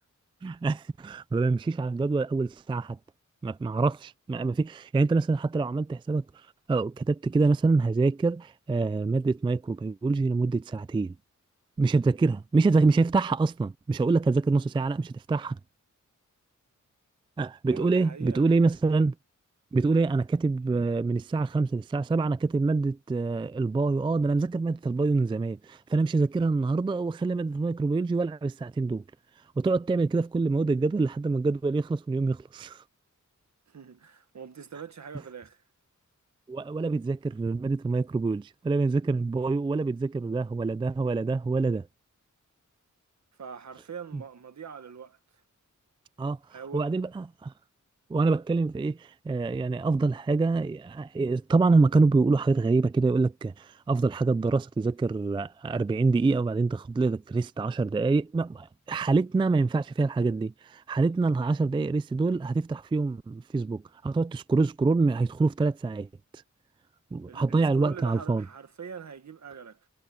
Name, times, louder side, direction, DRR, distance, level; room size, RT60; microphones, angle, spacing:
voice 1, 0.4-3.0 3.4-6.2 6.7-11.1 11.8-15.6 17.4-19.1 19.7-29.0 29.6-32.8 36.5-41.9 46.2-46.4 46.7-47.5 48.1-66.1 67.1-68.4, right 3 dB, 15° right, 0.3 m, -26 dB
voice 2, 17.7-18.6 33.7-35.6 43.4-45.2 46.5-47.0 67.3-69.8, right 7 dB, 60° right, 1.7 m, -43 dB
wide cardioid pair, 115°, 31 cm